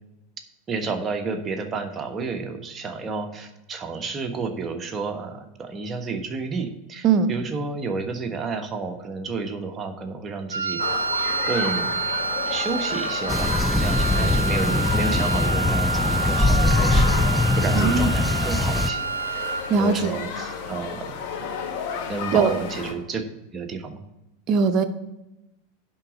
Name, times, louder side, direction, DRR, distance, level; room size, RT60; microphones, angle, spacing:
voice 1, 0.7-10.8 11.5-12.0 12.5-17.2 17.6-19.0 19.7-21.1 22.0-23.2 23.5-24.0, right 4 dB, 30° right, 5 dB, 1.2 m, -30 dB
Wind instrument woodwind instrument, 10.5-19.8, right 4 dB, 90° right, 0.7 m, -28 dB
sound 1, 10.8-22.9, left 6 dB, 55° left, 1.4 m, -32 dB
sound 2, 13.3-18.9, left 2 dB, 5° left, 0.4 m, -22 dB
voice 2, 17.7-18.1 19.7-20.2 22.3-22.5 24.5-24.8, right 5 dB, 45° right, 9 dB, 0.9 m, -20 dB
10.5 x 4.0 x 6.3 m, 0.93 s
hypercardioid pair, 90°, 0 cm